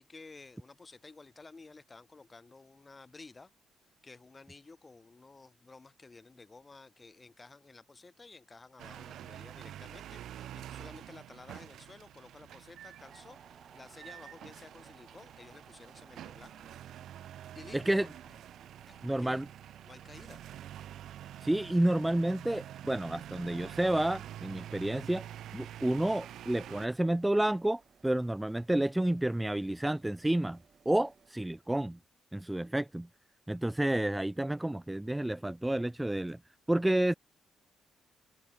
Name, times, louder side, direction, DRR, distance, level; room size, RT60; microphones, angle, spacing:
voice 1, 0.0-3.5 4.0-13.4 13.7-17.0 17.5-17.8 18.2-18.4 18.9-19.4 19.8-20.4, left 3 dB, 25° left, 4.3 m, -53 dB
sound 1, 8.8-26.9, right 11 dB, 75° right, 1.4 m, -47 dB
sound 2, 13.0-31.3, right 6 dB, 45° right, 5.4 m, -61 dB
voice 2, 17.7-18.1 19.0-19.5 21.4-25.3 25.5-30.6 30.9-32.0 32.3-33.1 33.5-36.4 36.7-37.1, right 1 dB, 10° right, 0.5 m, -30 dB
cardioid pair, 90°, 0 cm